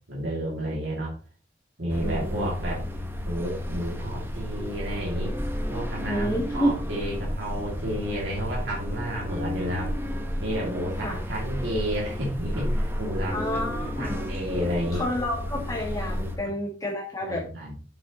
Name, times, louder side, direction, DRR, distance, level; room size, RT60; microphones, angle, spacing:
voice 1, 0.1-1.1 1.8-2.8 3.3-5.3 5.7-9.9 10.4-13.6 13.9-15.0 17.2-17.7, equal, 80° right, -4 dB, 2.6 m, -31 dB
sound 1, 1.9-16.4, left 1 dB, 15° right, 1.1 m, -32 dB
voice 2, 2.0-2.5 6.1-6.7 11.0-11.2 13.3-14.3 14.9-17.5, equal, 20° left, -2 dB, 1.6 m, -29 dB
8.4 x 6.6 x 3.1 m, 0.39 s
head